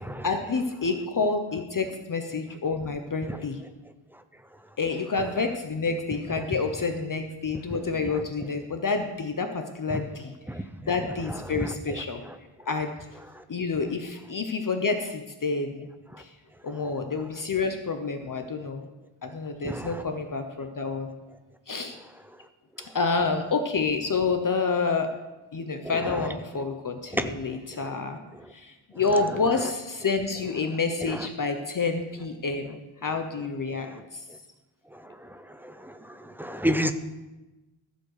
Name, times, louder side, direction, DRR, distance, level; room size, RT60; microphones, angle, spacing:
voice 1, 0.2-3.6 4.8-12.2 12.7-13.0 13.5-15.9 16.2-16.3 16.6-18.9 19.2-21.1 21.7-22.0 22.9-25.1 25.5-28.2 28.5-33.9 34.1-34.2, left 4 dB, 40° left, 6 dB, 0.8 m, -28 dB
voice 2, 36.4-36.9, equal, 5° right, 9 dB, 0.4 m, -27 dB
14.0 x 5.3 x 6.6 m, 1.1 s
wide cardioid pair, 175°, 48 cm